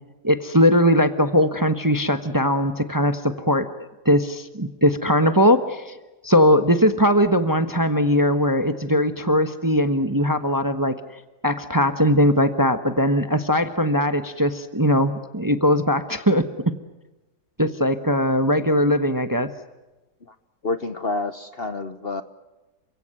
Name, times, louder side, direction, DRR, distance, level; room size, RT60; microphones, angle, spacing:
voice 1, 0.2-3.7 4.0-6.0 6.2-11.0 11.4-16.7 17.6-19.5, equal, 15° right, 10 dB, 1.0 m, -20 dB
voice 2, 20.6-22.2, left 3 dB, 45° left, 11 dB, 1.1 m, -28 dB
29.0 x 16.5 x 9.8 m, 1.1 s
omnidirectional pair, 1.7 m